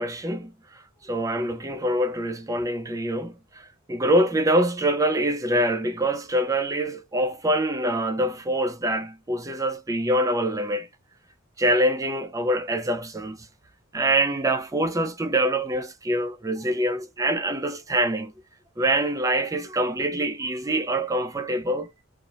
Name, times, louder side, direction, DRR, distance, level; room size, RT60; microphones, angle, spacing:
voice 1, 0.0-10.9 11.6-13.4 13.9-18.3 18.8-21.9, right 1 dB, 15° right, 0.5 m, -25 dB
3.0 x 2.2 x 2.8 m
head